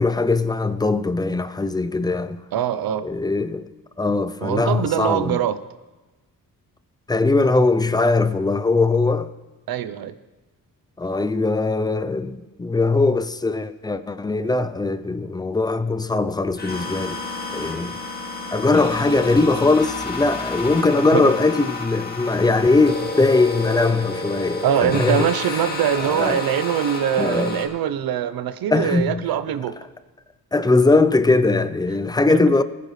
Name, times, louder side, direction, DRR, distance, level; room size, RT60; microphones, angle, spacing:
voice 1, 0.0-2.4 3.0-3.7 4.0-5.4 7.1-9.3 11.0-17.2 17.5-18.0 18.5-25.3 26.0-26.4 27.2-27.7 28.7-29.3 30.5-32.6, left 3 dB, 10° left, 0.5 m, -20 dB
voice 2, 2.5-3.1 4.4-5.6 9.7-10.1 21.1-21.3 24.6-29.7 32.3-32.4, right 9 dB, 75° right, 0.8 m, -23 dB
sound 1, 16.6-27.7, left 3 dB, 25° left, 1.8 m, -30 dB
20.5 x 10.0 x 3.2 m
cardioid pair, 125°, 36 cm